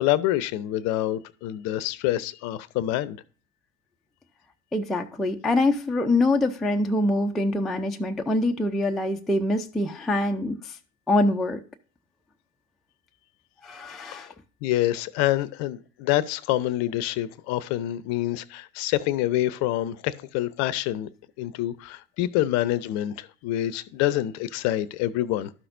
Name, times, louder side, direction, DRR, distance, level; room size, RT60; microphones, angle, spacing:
voice 1, 0.0-3.2 14.6-21.1 21.4-25.5, left 14 dB, 40° left, 0.6 m, -26 dB
voice 2, 4.7-10.8 11.1-11.6 13.6-14.3, left 2 dB, ahead, 0.3 m, -24 dB
12.5 x 5.8 x 2.5 m
figure-of-eight pair, 75°, 40 cm